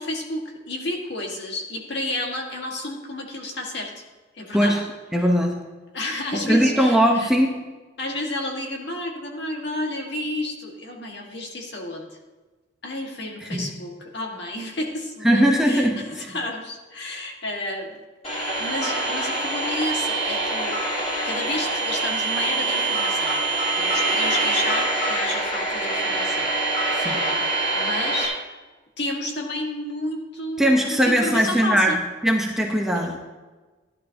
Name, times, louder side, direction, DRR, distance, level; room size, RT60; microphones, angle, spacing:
voice 1, 0.0-3.9 4.3-4.8 5.9-7.3 8.0-12.2 12.8-18.0 18.6-20.8 21.2-23.4 23.8-28.4 29.0-32.0 32.9-33.1, left 1 dB, 55° left, 0 dB, 1.9 m, -31 dB
voice 2, 5.1-5.6 6.3-7.6 13.4-13.6 15.2-16.3 27.0-27.2 30.6-32.0 32.2-33.2, equal, ahead, 0 dB, 0.9 m, -20 dB
sound 1, 18.2-28.3, right 2 dB, 30° left, 3.6 m, -24 dB
15.0 x 11.0 x 2.9 m, 1.2 s
head